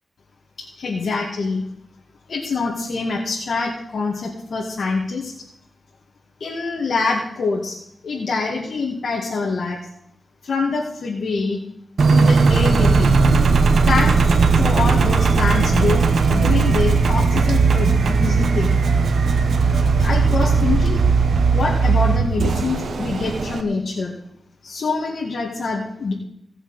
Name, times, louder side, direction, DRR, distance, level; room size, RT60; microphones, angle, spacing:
voice 1, 0.6-1.6 2.3-5.3 6.4-7.8 8.0-9.8 10.4-11.6 12.1-13.1 13.9-14.2 14.6-18.8 19.8-21.1 21.5-24.1 24.6-26.1, left 4 dB, 80° left, -3 dB, 2.2 m, -25 dB
Engine, 12.0-23.6, right 4 dB, 85° right, 1.1 m, -17 dB
18.0 x 6.5 x 6.4 m, 0.73 s
wide cardioid pair, 80°, 0 cm